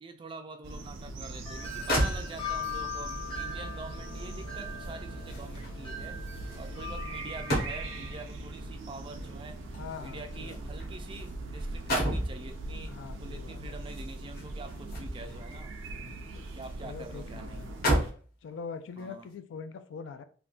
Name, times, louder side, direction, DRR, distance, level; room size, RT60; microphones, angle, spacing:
voice 1, 0.0-6.2 6.5-9.6 10.0-12.9 13.2-15.7 16.5-17.7 19.0-19.3, right 3 dB, 25° right, 6 dB, 0.3 m, -45 dB
sound 1, 0.6-18.1, right 2 dB, 85° right, 0.5 m, -41 dB
Wind chime, 1.4-8.2, left 4 dB, 25° left, 0.8 m, -40 dB
sound 2, 1.5-1.6 1.9-2.7 4.1-8.1 9.2-11.3 11.6-12.4 13.8-15.4 15.8-16.8 17.1-17.2 17.6-18.3 19.0-19.2, equal, 50° left, 1.0 m, -33 dB
voice 2, 9.8-10.6 12.9-13.8 15.9-16.3 16.8-17.7 18.4-20.2, left 5 dB, 70° left, 11 dB, 0.3 m, -43 dB
3.3 x 2.2 x 2.4 m, 0.42 s
head